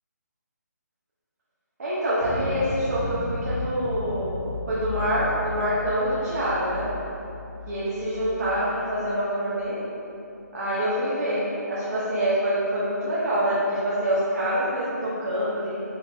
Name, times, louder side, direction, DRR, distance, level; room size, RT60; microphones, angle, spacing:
voice 1, 1.8-4.4 4.7-6.9 7.7-9.8 10.5-15.8, equal, 55° right, -10 dB, 0.9 m, -26 dB
sound 1, 2.2-9.3, left 2 dB, 30° right, 1.2 m, -34 dB
4.5 x 3.4 x 2.4 m, 2.9 s
hypercardioid pair, 160°, 10 cm